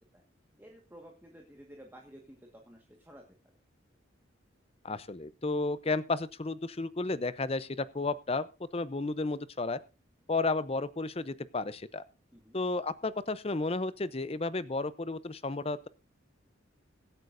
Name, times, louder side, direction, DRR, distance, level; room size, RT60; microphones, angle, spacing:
voice 1, 0.6-3.2 12.3-12.6, equal, 10° right, 1 dB, 1.6 m, -53 dB
voice 2, 4.8-8.5 8.7-9.8 10.3-12.0 12.5-15.9, left 3 dB, 30° left, 16 dB, 0.6 m, -32 dB
22.5 x 8.9 x 2.6 m, 0.28 s
head